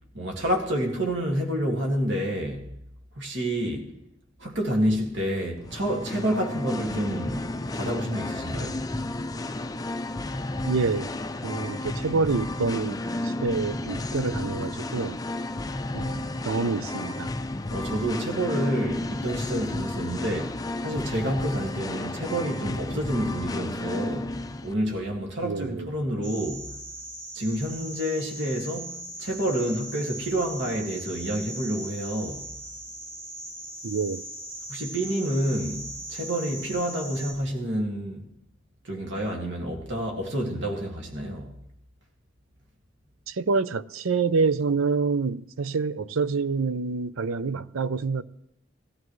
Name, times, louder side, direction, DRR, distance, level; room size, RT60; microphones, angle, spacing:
voice 1, 0.1-2.7 3.2-3.9 4.4-7.5 7.7-8.8 17.7-26.7 27.3-28.9 29.2-32.5 34.7-38.2 38.8-41.5, right 1 dB, 60° right, 2.1 m, -29 dB
Singing, 5.6-24.7, left 2 dB, 20° left, 0.5 m, -32 dB
voice 2, 10.7-11.1 11.4-15.2 15.9-17.3 25.4-25.9 33.8-34.2 40.4-40.5 43.3-48.2, right 4 dB, 85° right, 0.6 m, -27 dB
sound 1, 26.2-37.3, right 2 dB, 40° right, 5.7 m, -39 dB
19.0 x 14.0 x 3.2 m
head